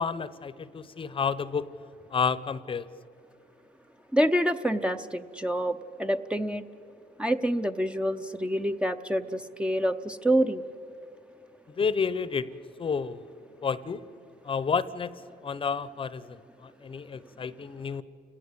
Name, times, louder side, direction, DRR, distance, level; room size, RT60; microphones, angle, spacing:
voice 1, 0.0-1.7 2.1-2.9 11.8-12.5 12.8-13.3 13.6-14.0 14.4-18.0, left 6 dB, 30° left, 16 dB, 0.8 m, -30 dB
voice 2, 4.1-6.7 7.2-10.6, equal, 5° right, 8 dB, 0.6 m, -27 dB
29.5 x 17.5 x 8.4 m, 2.7 s
cardioid pair, 110°, 17 cm